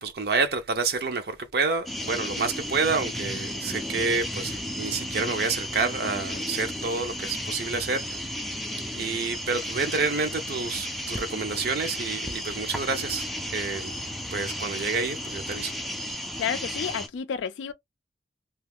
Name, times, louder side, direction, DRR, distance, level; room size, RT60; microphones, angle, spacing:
voice 1, 0.0-8.2 8.9-14.0 14.3-15.8, right 4 dB, 55° right, 0.5 m, -29 dB
sound 1, 1.9-17.1, left 1 dB, ahead, 0.3 m, -34 dB
voice 2, 16.4-17.7, left 7 dB, 80° left, 0.3 m, -30 dB
2.4 x 2.3 x 3.4 m
head